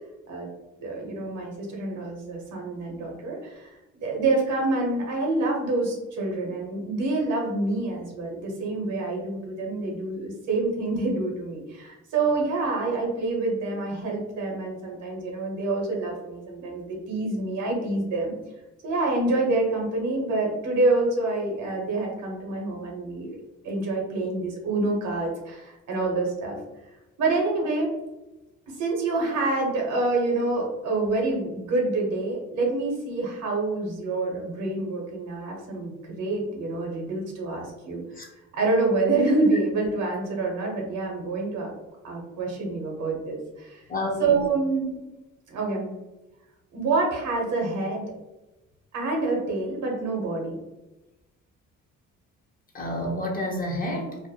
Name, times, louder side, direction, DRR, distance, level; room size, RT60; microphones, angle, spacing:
voice 1, 0.8-3.7 4.0-18.4 18.8-23.3 23.6-26.6 27.2-27.9 28.7-38.0 38.5-41.7 42.0-43.8 44.2-45.0 45.5-45.9 46.7-48.0 48.9-50.5, right 3 dB, 80° right, -1 dB, 0.8 m, -27 dB
voice 2, 43.9-44.4 52.7-54.3, left 1 dB, 30° left, -1 dB, 0.8 m, -29 dB
2.5 x 2.1 x 2.7 m, 1.0 s
cardioid pair, 90°, 30 cm